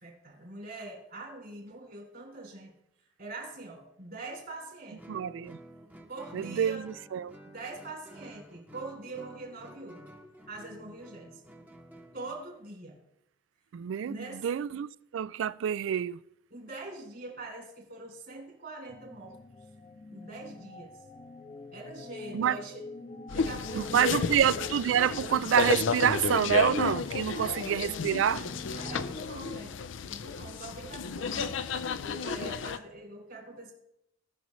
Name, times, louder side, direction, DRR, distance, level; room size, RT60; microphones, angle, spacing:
voice 1, 0.0-2.7 3.2-5.2 6.1-6.8 7.4-10.0 10.5-11.4 12.1-13.0 14.1-14.5 16.5-19.3 20.1-21.0 21.7-22.9 23.3-24.0 27.3-27.7 28.7-29.8 30.1-31.6 32.0-33.7, right 2 dB, 55° right, 2.9 m, -43 dB
Guitar, 5.0-12.5, right 1 dB, 10° right, 0.9 m, -51 dB
voice 2, 5.1-5.6 6.3-7.3 13.7-16.2 22.3-22.6 23.7-28.5, right 9 dB, 80° right, 0.3 m, -27 dB
sound 1, 18.9-29.1, left 2 dB, 30° left, 0.5 m, -46 dB
sound 2, 23.3-32.8, left 5 dB, 80° left, 0.5 m, -32 dB
18.0 x 6.1 x 3.1 m
head